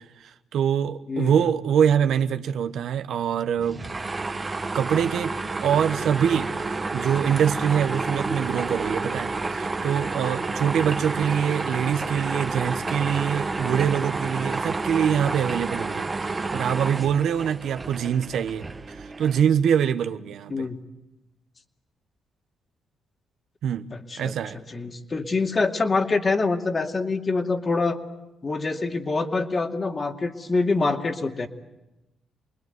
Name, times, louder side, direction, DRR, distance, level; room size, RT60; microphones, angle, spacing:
voice 1, 0.2-3.8 4.7-5.3 5.6-20.6 23.6-23.9 24.2-24.6, right 8 dB, 75° right, 1.1 m, -24 dB
voice 2, 1.1-1.5 20.5-20.8 24.1-24.3 24.7-28.0 28.4-31.5, left 3 dB, 35° left, 2.4 m, -25 dB
sound 1, 3.6-19.4, right 3 dB, 25° right, 1.3 m, -30 dB
28.0 x 21.0 x 9.4 m
cardioid pair, 85°, 0 cm